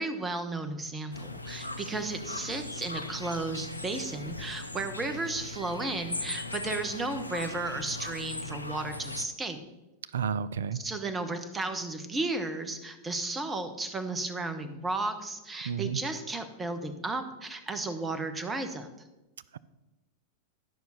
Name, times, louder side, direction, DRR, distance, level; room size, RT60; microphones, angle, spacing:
voice 1, 0.0-9.6 10.7-18.9, right 2 dB, 15° right, 8 dB, 1.1 m, -34 dB
sound 1, 1.1-9.3, left 2 dB, 85° left, 0.5 m, -39 dB
voice 2, 10.1-10.8 15.7-16.0, right 7 dB, 65° right, 18 dB, 0.4 m, -31 dB
12.5 x 5.7 x 5.9 m, 1.0 s
figure-of-eight pair, 90°, 0 cm